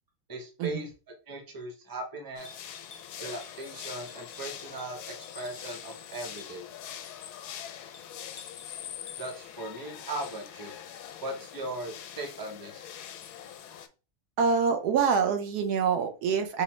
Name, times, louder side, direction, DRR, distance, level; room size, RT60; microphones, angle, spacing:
voice 1, 0.3-0.9 1.3-2.5 3.2-5.0 5.3-6.7 9.2-10.7 11.2-12.9, right 2 dB, 20° right, 2 dB, 0.6 m, -38 dB
sound 1, 2.4-13.9, left 9 dB, 85° left, 1.1 m, -43 dB
voice 2, 14.4-16.6, right 6 dB, 85° right, 6 dB, 1.2 m, -25 dB
5.1 x 2.0 x 3.1 m, 0.32 s
omnidirectional pair, 1.7 m